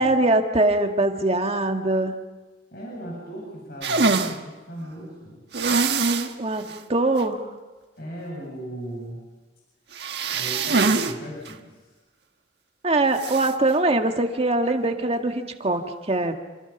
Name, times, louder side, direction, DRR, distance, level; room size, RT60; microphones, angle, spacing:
voice 1, 0.0-2.2 6.4-6.6 6.9-7.4 12.8-16.3, right 2 dB, 35° right, 4 dB, 1.9 m, -22 dB
voice 2, 2.7-5.4 8.0-9.2 10.3-11.9, right 1 dB, 55° left, -3 dB, 7.9 m, -37 dB
sound 1, 3.8-4.3 5.5-6.3 6.7-6.8 7.2-7.3 9.9-11.1 11.5-11.6 13.2-13.5, right 4 dB, 65° right, 1.6 m, -23 dB
28.5 x 27.0 x 6.1 m, 1.2 s
head